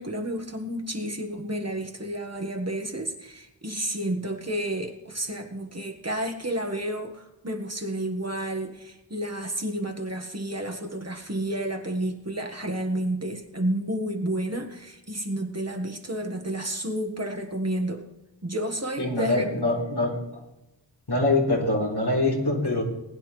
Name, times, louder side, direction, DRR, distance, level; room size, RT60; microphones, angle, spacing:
voice 1, 0.0-18.0 18.4-19.5, right 1 dB, 35° right, 4 dB, 1.6 m, -31 dB
voice 2, 19.0-20.2 21.1-22.8, left 2 dB, 60° left, -2 dB, 3.9 m, -24 dB
20.0 x 10.0 x 3.3 m, 0.95 s
wide cardioid pair, 45°, 44 cm